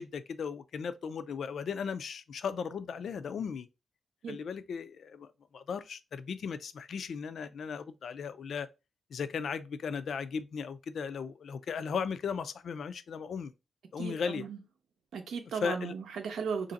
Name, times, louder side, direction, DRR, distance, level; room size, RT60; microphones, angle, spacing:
voice 1, 0.0-3.7 4.3-5.3 5.5-8.7 9.1-13.5 13.9-14.4 15.6-15.9, left 6 dB, 65° left, 0.3 m, -36 dB
voice 2, 14.0-14.6 15.1-16.7, right 5 dB, 90° right, 0.7 m, -36 dB
3.2 x 2.5 x 3.9 m
wide cardioid pair, 145°, 0 cm